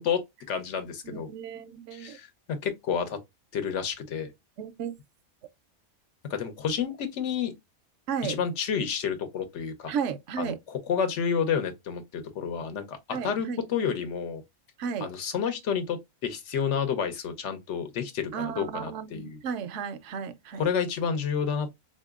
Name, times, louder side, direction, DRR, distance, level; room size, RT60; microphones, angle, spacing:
voice 1, 0.0-1.3 1.9-3.2 3.5-4.3 6.3-7.5 8.2-9.9 10.4-14.4 15.0-16.0 16.2-19.4 20.5-21.7, left 7 dB, 75° left, 1.1 m, -30 dB
voice 2, 1.0-2.2 4.6-5.0 8.1-8.4 9.9-10.6 13.1-13.6 14.8-15.1 18.3-20.7, right 7 dB, 80° right, 0.9 m, -34 dB
3.8 x 2.8 x 2.3 m
omnidirectional pair, 1.2 m